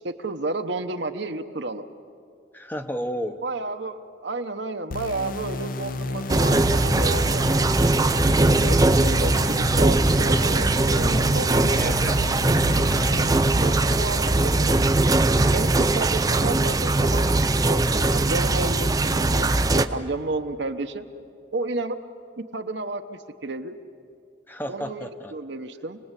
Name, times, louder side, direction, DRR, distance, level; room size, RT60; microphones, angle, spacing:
voice 1, 0.0-1.8 3.4-7.6 8.5-11.9 13.1-13.3 13.5-14.7 15.0-17.3 17.7-21.0 21.5-22.0 22.5-23.7 24.7-26.0, right 2 dB, 60° right, 7 dB, 1.0 m, -31 dB
voice 2, 2.5-3.4 11.8-12.4 12.9-13.2 24.5-25.3, equal, 10° left, 7 dB, 0.8 m, -32 dB
sound 1, 4.9-13.4, left 2 dB, 45° left, 0.7 m, -33 dB
sound 2, 6.3-19.9, right 2 dB, 20° right, 0.5 m, -20 dB
sound 3, 10.2-16.0, equal, 85° left, 4.5 m, -41 dB
28.0 x 20.0 x 8.3 m, 2.4 s
head